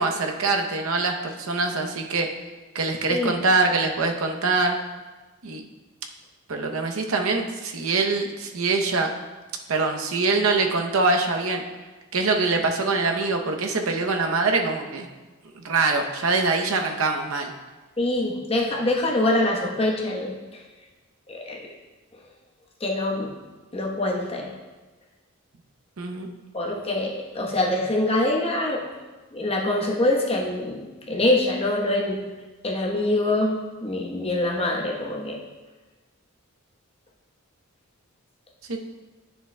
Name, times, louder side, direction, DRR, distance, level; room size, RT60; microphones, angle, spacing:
voice 1, 0.0-2.3 2.7-4.8 5.4-5.6 6.5-9.1 9.7-11.6 12.1-15.1 15.6-17.5 26.0-26.3 38.7-38.8, right 3 dB, 70° right, 3 dB, 0.7 m, -24 dB
voice 2, 18.0-20.6 21.3-21.7 22.8-23.3 23.7-24.5 26.5-28.8 29.3-32.2 32.6-35.4, left 1 dB, 25° left, -2 dB, 1.0 m, -24 dB
9.9 x 6.7 x 2.2 m, 1.2 s
head